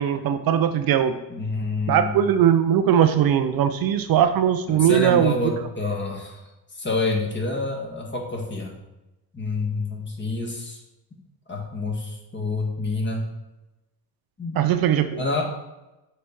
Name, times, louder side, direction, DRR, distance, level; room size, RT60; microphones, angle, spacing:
voice 1, 0.0-1.2 1.9-5.3 14.6-15.2, right 9 dB, 60° right, 9 dB, 0.5 m, -20 dB
voice 2, 1.3-2.2 4.7-6.4 6.7-8.7 9.3-10.8 11.5-13.3 14.4-14.6 15.2-15.4, left 3 dB, 25° left, 0 dB, 1.7 m, -28 dB
6.4 x 4.0 x 4.5 m, 0.99 s
cardioid pair, 90°, 41 cm